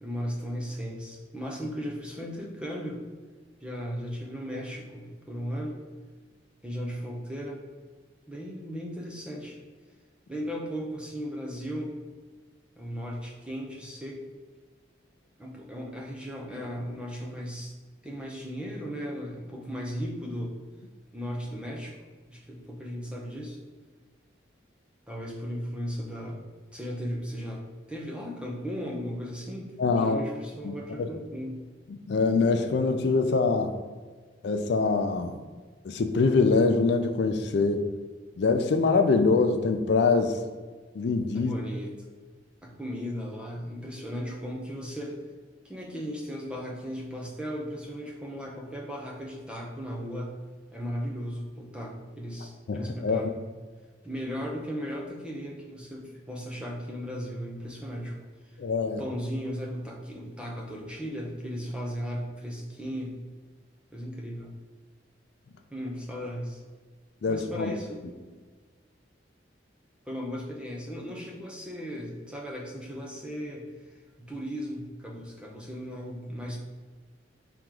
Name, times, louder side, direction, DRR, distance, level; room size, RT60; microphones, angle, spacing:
voice 1, 0.0-3.0 3.6-5.8 6.6-7.6 8.3-9.6 10.3-11.9 12.8-14.2 15.4-17.7 18.0-20.6 21.1-22.0 22.3-23.6 25.1-26.4 26.7-31.6 41.3-41.9 42.6-45.2 45.6-50.3 50.7-53.3 54.0-58.2 58.9-63.2 63.9-64.5 65.7-66.6 67.3-68.3 70.1-73.6 74.2-76.6, equal, 5° right, -1 dB, 0.6 m, -36 dB
voice 2, 29.8-30.2 30.6-31.1 31.9-33.7 34.4-35.4 35.8-37.8 38.4-40.4 41.0-41.5 52.7-53.3 58.6-59.0 67.2-67.7, left 4 dB, 60° left, 6 dB, 0.3 m, -24 dB
4.6 x 2.9 x 3.7 m, 1.4 s
head